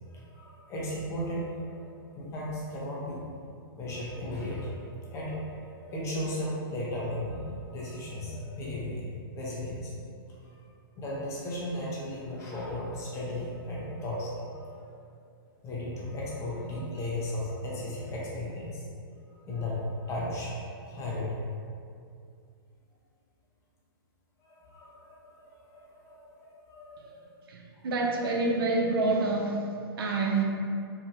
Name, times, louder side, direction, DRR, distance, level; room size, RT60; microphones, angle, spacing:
voice 1, 0.1-3.2 3.7-5.5 5.8-9.9 10.4-10.6 11.0-14.9 15.6-18.8 19.3-21.4 24.4-27.3, left 1 dB, 25° left, -5 dB, 0.6 m, -36 dB
voice 2, 27.5-30.4, right 3 dB, 70° right, 0 dB, 0.5 m, -27 dB
2.7 x 2.2 x 3.0 m, 2.4 s
hypercardioid pair, 120°, 13 cm